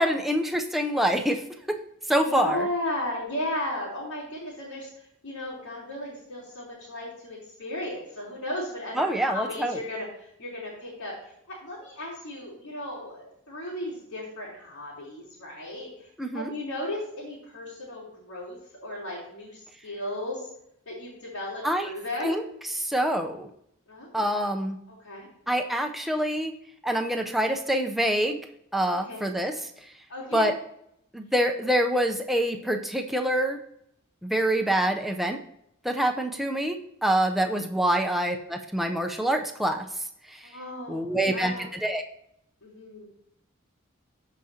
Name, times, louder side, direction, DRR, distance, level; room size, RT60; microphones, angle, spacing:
voice 1, 0.0-1.4 2.1-2.7 9.0-9.8 16.2-16.5 21.6-21.9 22.2-23.5 24.1-24.8 25.5-26.5 26.8-28.4 28.7-29.7 30.3-30.5 31.1-33.6 34.2-35.4 35.8-36.8 37.0-40.5 40.9-42.0, right 1 dB, ahead, 4 dB, 0.6 m, -26 dB
voice 2, 2.3-4.9 5.2-10.1 10.4-11.1 11.6-18.6 18.8-20.5 20.9-22.3 23.9-24.2 25.0-25.3 29.1-29.6 30.1-30.5 37.6-37.7 40.4-41.0 41.3-41.7 42.6-43.1, left 1 dB, 80° left, -10 dB, 3.7 m, -35 dB
14.5 x 5.0 x 2.8 m, 0.75 s
head